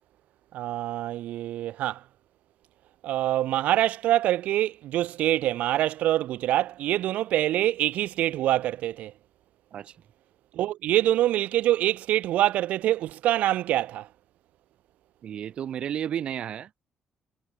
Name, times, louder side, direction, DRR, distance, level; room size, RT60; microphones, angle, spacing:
voice 1, 0.5-2.0 3.0-9.1 10.5-14.1, right 14 dB, 90° right, 1.3 m, -25 dB
voice 2, 15.2-16.9, right 9 dB, 50° right, 3.3 m, -33 dB
cardioid pair, 170°, 2 cm